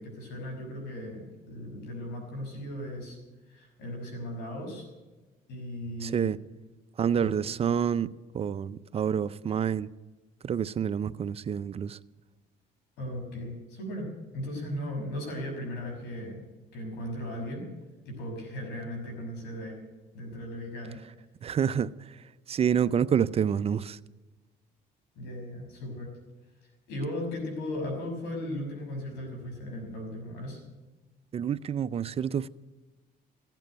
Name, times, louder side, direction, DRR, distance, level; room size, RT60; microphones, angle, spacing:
voice 1, 0.0-3.2 3.5-4.9 5.5-6.3 7.2-7.3 13.0-16.4 16.7-17.6 18.0-19.8 20.1-21.2 25.1-26.1 26.9-30.6, left 1 dB, 85° left, 6.0 m, -37 dB
voice 2, 6.0-6.4 7.0-8.1 8.3-9.9 10.4-12.0 21.4-21.9 22.5-24.0 31.3-32.5, right 8 dB, 35° right, 0.5 m, -28 dB
15.5 x 9.1 x 9.0 m
cardioid pair, 110°, 17 cm